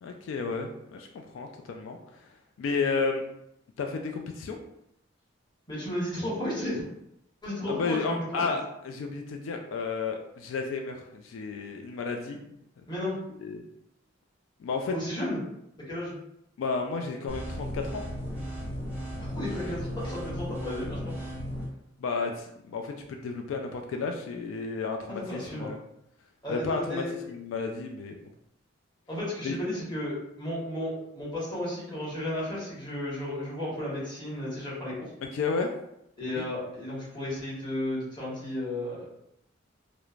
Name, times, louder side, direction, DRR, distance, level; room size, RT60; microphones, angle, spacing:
voice 1, 0.0-3.2 3.8-4.6 7.8-12.9 13.4-13.6 14.6-14.9 16.6-18.0 22.0-25.8 26.5-28.2 29.4-29.6 35.3-35.7 36.4-36.5, left 4 dB, 85° left, 4 dB, 0.3 m, -32 dB
voice 2, 5.7-6.8 7.4-8.5 12.9-13.2 14.9-15.4 15.9-16.2 19.2-21.0 25.1-25.7 26.4-27.1 29.1-34.9 36.2-39.1, left 1 dB, 25° left, -7 dB, 1.1 m, -33 dB
sound 1, 17.3-21.7, equal, 10° right, 0.7 m, -35 dB
3.1 x 2.0 x 2.4 m, 0.79 s
head